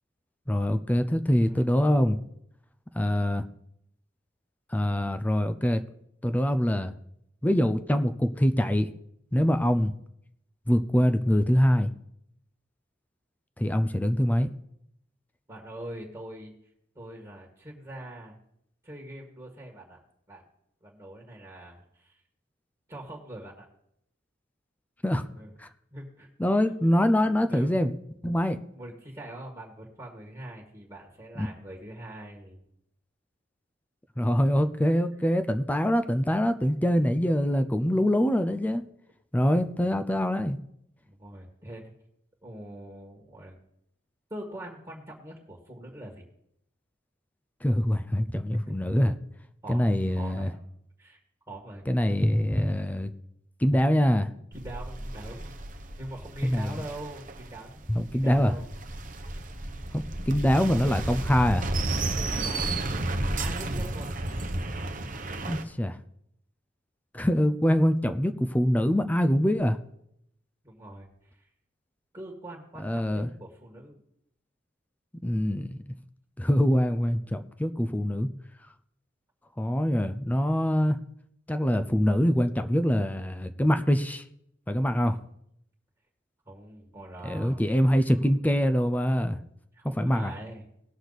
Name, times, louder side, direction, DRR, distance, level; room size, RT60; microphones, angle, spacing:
voice 1, 0.5-2.2 3.0-3.4 4.7-5.8 6.2-6.9 7.4-8.9 9.3-9.9 10.7-11.9 13.6-14.5 25.0-25.2 25.6-25.7 26.4-27.9 28.2-28.6 31.4-31.5 34.2-38.8 39.3-40.6 47.6-49.2 49.7-50.5 51.9-53.1 53.6-54.3 56.4-56.8 57.9-58.5 59.9-61.7 65.4-66.0 67.1-69.8 72.8-73.3 75.2-75.8 76.4-78.3 79.6-81.0 81.5-84.2 84.7-85.2 87.2-89.4 90.0-90.3, equal, 10° left, 10 dB, 0.5 m, -24 dB
voice 2, 15.5-16.5 17.0-18.4 18.8-20.0 20.3-20.4 20.8-22.2 22.9-23.7 25.3-25.5 25.9-26.3 26.8-26.9 27.5-27.8 28.7-32.6 34.9-35.2 39.5-40.0 41.0-41.8 42.4-43.6 44.3-46.2 49.6-49.9 50.2-50.6 51.0-51.2 51.5-51.9 54.5-55.5 56.0-58.7 62.2-62.8 63.1-64.1 70.6-71.5 72.1-74.0 86.5-87.9 89.7-90.6, right 1 dB, 20° right, -1 dB, 1.7 m, -43 dB
sound 1, 54.5-65.6, right 2 dB, 45° right, 1.0 m, -32 dB
19.0 x 6.4 x 4.0 m, 0.76 s
head